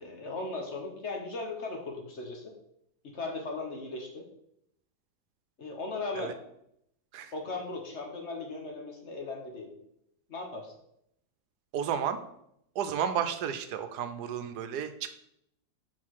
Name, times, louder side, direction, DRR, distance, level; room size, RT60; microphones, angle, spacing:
voice 1, 0.0-2.5 3.0-4.2 5.6-6.4 7.3-9.7 10.3-10.7, left 3 dB, 50° left, 1 dB, 1.3 m, -37 dB
voice 2, 11.7-12.3 12.7-15.1, right 8 dB, 85° right, 9 dB, 1.2 m, -32 dB
5.8 x 4.6 x 4.7 m, 0.75 s
omnidirectional pair, 1.7 m